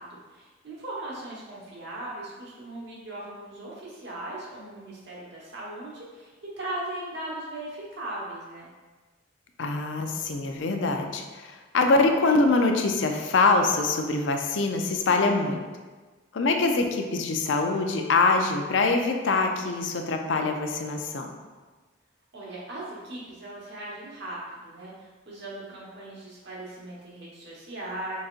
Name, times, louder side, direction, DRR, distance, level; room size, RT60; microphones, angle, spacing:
voice 1, 0.0-6.3 6.6-8.7 22.3-24.4 24.6-28.2, right 1 dB, 60° right, -6 dB, 1.2 m, -38 dB
voice 2, 9.6-15.6 16.3-21.3, left 3 dB, 65° left, 4 dB, 0.4 m, -24 dB
4.0 x 3.7 x 2.5 m, 1.3 s
head